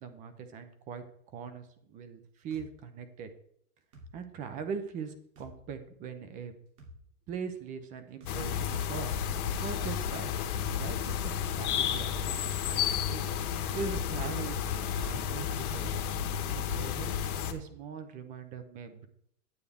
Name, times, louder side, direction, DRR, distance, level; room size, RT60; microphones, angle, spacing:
voice 1, 0.0-3.3 4.1-6.5 7.3-10.3 10.6-15.9 16.2-17.1 17.5-19.1, right 6 dB, 20° right, 10 dB, 0.5 m, -41 dB
sound 1, 2.5-2.7 3.9-4.1 5.4-5.5 6.8-7.0 8.2-8.4 9.6-9.8 11.0-11.2, equal, 80° right, 3.0 m, -49 dB
sound 2, 8.3-17.5, left 8 dB, 70° left, 1.4 m, -32 dB
9.3 x 8.1 x 3.5 m, 0.71 s
hypercardioid pair, 145°, 45 cm